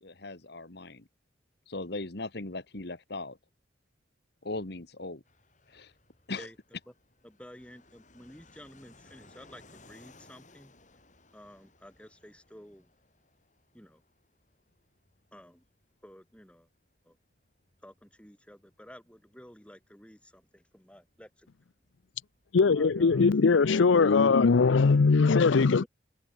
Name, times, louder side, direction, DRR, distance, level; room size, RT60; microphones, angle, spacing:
voice 1, 0.0-1.0 1.7-3.4 4.4-5.2 5.7-5.9 6.3-6.5, left 2 dB, 55° left, 1.7 m, -38 dB
Fixed-wing aircraft airplane, 5.3-23.6, left 2 dB, 40° left, 6.8 m, -62 dB
voice 2, 7.2-10.7 11.3-12.9 13.7-14.0 15.3-15.6 16.0-16.7 17.0-17.2 17.8-21.5 22.6-23.4 25.8-25.9, equal, 5° left, 6.8 m, -51 dB
voice 3, 22.5-25.8, left 4 dB, 75° left, 0.5 m, -21 dB
head